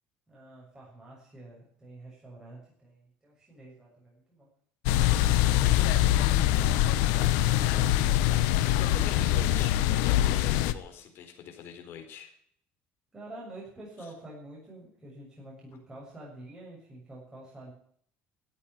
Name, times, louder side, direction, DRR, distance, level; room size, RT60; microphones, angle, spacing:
voice 1, 0.3-4.5 5.6-8.4 13.1-17.7, right 1 dB, 15° right, -4 dB, 6.8 m, -48 dB
sound 1, 4.9-10.7, left 13 dB, 90° left, 1.0 m, -24 dB
voice 2, 8.7-9.8 10.2-12.3 14.0-14.1, left 7 dB, 55° left, 4 dB, 4.1 m, -44 dB
13.5 x 8.8 x 9.5 m, 0.62 s
cardioid pair, 130°, 5 cm